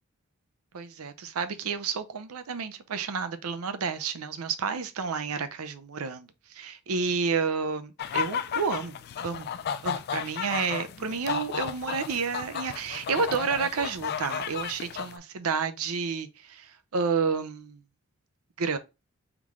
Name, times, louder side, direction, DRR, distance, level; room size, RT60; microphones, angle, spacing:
voice 1, 0.7-9.0 9.2-9.5 9.8-17.8 18.6-18.8, right 5 dB, 75° right, 0.6 m, -30 dB
sound 1, 8.0-15.2, left 8 dB, 45° left, 0.3 m, -34 dB
3.6 x 3.6 x 3.1 m
head